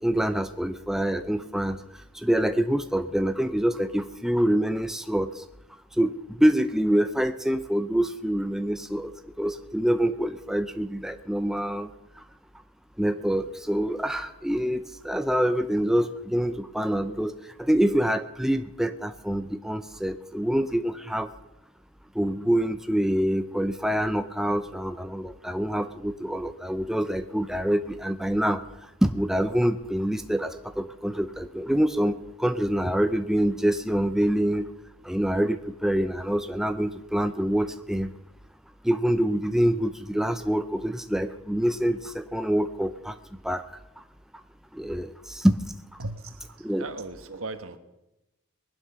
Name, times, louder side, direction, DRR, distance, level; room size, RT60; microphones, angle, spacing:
voice 1, 0.0-1.8 2.2-5.3 6.0-9.1 9.4-11.9 13.0-17.3 17.6-21.3 22.2-28.6 29.0-34.7 35.0-38.1 38.8-43.1 43.4-43.6 44.7-45.6 46.6-46.9, equal, ahead, 8 dB, 0.5 m, -26 dB
voice 2, 46.0-47.8, right 2 dB, 90° right, 8 dB, 1.4 m, -37 dB
20.5 x 11.5 x 5.7 m, 0.95 s
head